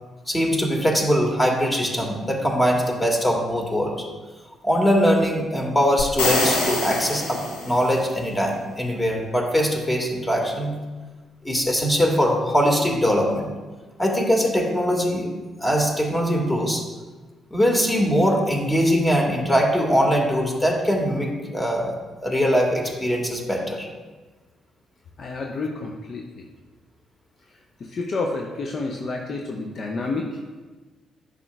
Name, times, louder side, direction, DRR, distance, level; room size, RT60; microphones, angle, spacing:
voice 1, 0.3-3.9 4.6-10.8 11.4-13.5 14.0-15.3 15.6-16.8 17.5-22.0 22.2-23.9, equal, 20° left, 0 dB, 1.7 m, -21 dB
sound 1, 6.0-8.1, left 2 dB, 80° left, 1.0 m, -25 dB
voice 2, 25.2-26.5 27.8-30.4, left 3 dB, 50° left, 1 dB, 0.6 m, -29 dB
10.5 x 5.0 x 2.2 m, 1.3 s
hypercardioid pair, 45°, 0 cm